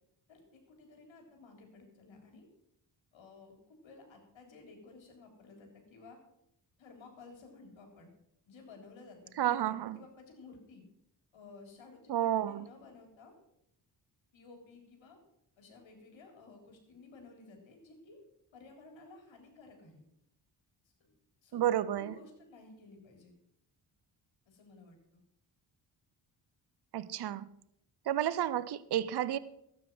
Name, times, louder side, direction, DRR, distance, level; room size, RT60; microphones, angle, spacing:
voice 1, 0.3-2.5 3.1-6.2 6.8-8.1 8.5-10.8 11.3-13.4 14.3-15.2 15.6-18.2 18.5-20.0 21.0-21.1 21.4-21.6 21.9-23.3 24.5-25.2, left 3 dB, 75° left, 3 dB, 3.7 m, -55 dB
voice 2, 9.4-10.0 12.1-12.7 21.5-22.1 26.9-27.5 28.1-29.4, right 11 dB, 55° right, 17 dB, 0.8 m, -31 dB
12.5 x 9.3 x 6.2 m, 0.78 s
supercardioid pair, 55°, 47 cm